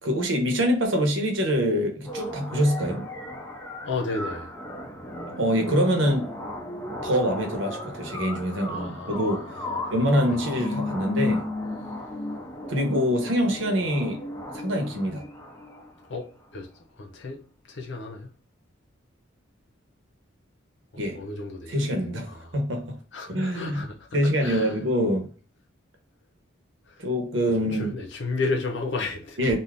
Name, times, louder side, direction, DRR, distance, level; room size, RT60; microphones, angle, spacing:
voice 1, 0.0-3.1 5.4-6.3 7.0-9.6 9.9-11.4 12.7-14.2 14.5-15.2 21.0-21.2 21.7-23.0 23.3-23.8 24.1-25.3 27.0-27.9 29.4-29.6, equal, 75° right, 0.9 m, -25 dB
sound 1, 2.1-16.0, left 1 dB, 10° left, 0.5 m, -34 dB
voice 2, 3.8-4.5 8.7-9.8 16.1-16.7 16.9-18.3 20.9-21.7 22.3-22.5 23.1-24.8 26.9-27.1 27.7-29.4, left 3 dB, 65° left, 0.7 m, -33 dB
2.7 x 2.4 x 3.4 m
head